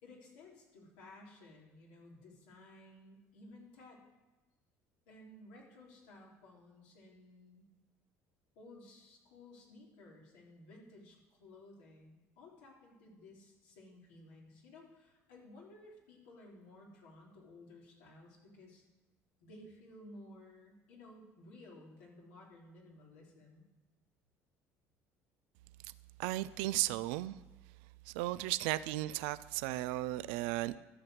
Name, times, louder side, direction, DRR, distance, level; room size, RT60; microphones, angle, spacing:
voice 1, 0.0-4.0 5.1-7.6 8.5-18.8 19.4-23.6 27.0-27.1, left 2 dB, 85° left, -3 dB, 3.4 m, -56 dB
voice 2, 26.2-27.4 28.1-30.8, right 17 dB, 85° right, 15 dB, 0.4 m, -35 dB
12.5 x 5.8 x 7.9 m, 1.1 s
supercardioid pair, 80°, 7 cm